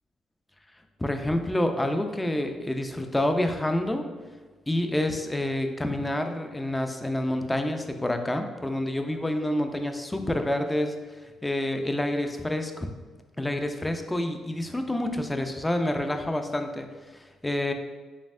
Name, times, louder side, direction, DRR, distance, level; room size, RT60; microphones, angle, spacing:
voice 1, 1.0-4.1 4.7-12.9 13.4-16.9 17.1-17.7, left 1 dB, 10° left, 6 dB, 0.3 m, -28 dB
4.1 x 3.4 x 2.4 m, 1.3 s
cardioid pair, 90°, 0 cm